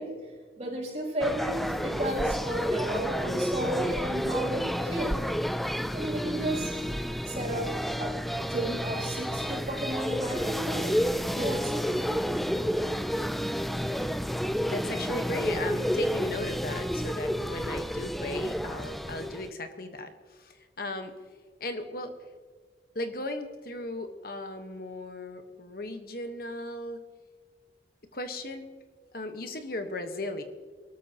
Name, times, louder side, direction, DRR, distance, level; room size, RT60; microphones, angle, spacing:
voice 1, 0.0-5.3 5.9-6.8 7.2-8.2 8.5-12.2, right 1 dB, 35° right, -4 dB, 4.9 m, -34 dB
sound 1, 1.2-19.5, equal, ahead, 0.3 m, -30 dB
voice 2, 14.6-21.1 21.6-22.1 22.9-27.0 28.1-28.6 29.1-30.4, left 2 dB, 55° left, 7 dB, 1.3 m, -36 dB
23.5 x 13.5 x 3.0 m, 1.5 s
head